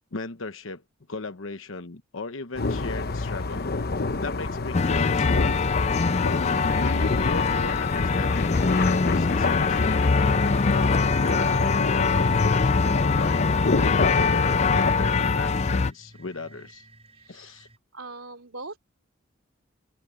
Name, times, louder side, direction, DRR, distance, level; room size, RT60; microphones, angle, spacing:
voice 1, 0.1-0.8 1.1-3.7 4.2-5.6 6.2-10.3 10.7-13.5 13.8-16.9 17.3-17.7, left 3 dB, 75° left, 1.0 m, -36 dB
sound 1, 2.6-14.9, left 3 dB, 50° left, 0.9 m, -29 dB
sound 2, 4.7-15.9, left 4 dB, 35° left, 0.5 m, -23 dB
sound 3, 10.2-17.8, right 2 dB, 30° right, 5.3 m, -47 dB
voice 2, 17.1-17.6 17.9-18.8, right 3 dB, 80° right, 3.3 m, -41 dB
open air
head